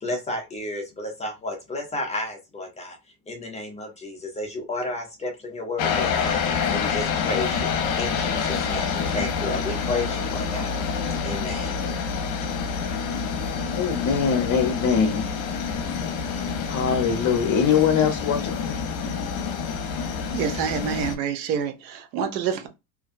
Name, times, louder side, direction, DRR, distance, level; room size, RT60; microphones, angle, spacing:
voice 1, 0.0-3.0 3.3-10.7 11.2-11.8 12.5-12.6, left 2 dB, 15° left, 0.5 m, -32 dB
sound 1, 5.8-21.2, left 6 dB, 65° left, 0.8 m, -27 dB
voice 2, 13.7-15.2 16.7-18.8, left 6 dB, 35° left, 0.9 m, -22 dB
voice 3, 20.3-22.7, right 7 dB, 90° right, 0.8 m, -27 dB
2.6 x 2.2 x 2.5 m
supercardioid pair, 120°, 50 cm